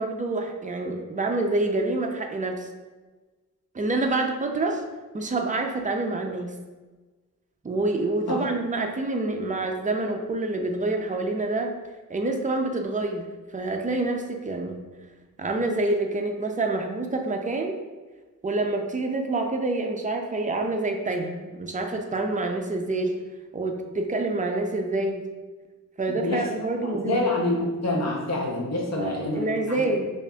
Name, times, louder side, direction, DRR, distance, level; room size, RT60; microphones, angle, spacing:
voice 1, 0.0-2.7 3.7-4.8 5.1-6.5 7.6-11.7 12.1-13.3 13.5-14.8 15.4-17.8 18.4-23.1 23.5-25.2 26.0-27.2 29.0-30.1, right 2 dB, 25° right, 3 dB, 0.5 m, -27 dB
voice 2, 26.1-26.4 26.8-29.8, left 2 dB, 50° left, -2 dB, 0.7 m, -27 dB
5.3 x 2.5 x 2.3 m, 1.3 s
wide cardioid pair, 70°, 34 cm